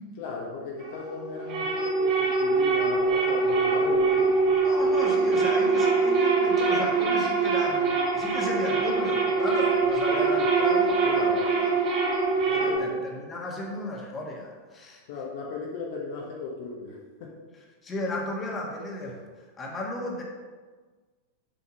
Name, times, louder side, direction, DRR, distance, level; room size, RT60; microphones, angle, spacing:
voice 1, 0.2-4.6 4.9-5.0 11.0-11.5 12.5-13.1 15.1-17.3, left 4 dB, 50° left, -2 dB, 1.3 m, -36 dB
sound 1, 0.8-12.8, right 4 dB, 35° right, 1.9 m, -23 dB
voice 2, 4.7-11.6 12.6-15.0 17.8-19.2 19.6-20.2, left 2 dB, 20° left, -1 dB, 1.7 m, -35 dB
6.8 x 5.7 x 5.4 m, 1.4 s
figure-of-eight pair, 90°, 0 cm